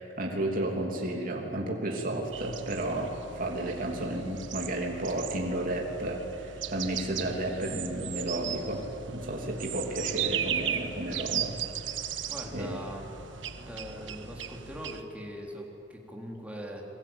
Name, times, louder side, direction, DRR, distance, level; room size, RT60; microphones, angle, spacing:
voice 1, 0.0-11.6 11.8-12.0 12.5-12.8, right 1 dB, 50° right, 0 dB, 3.1 m, -32 dB
sound 1, 2.3-15.0, right 9 dB, 80° right, 1.4 m, -37 dB
voice 2, 12.3-13.1 13.6-16.9, equal, 10° right, -1 dB, 3.8 m, -41 dB
29.5 x 22.5 x 8.9 m, 2.9 s
head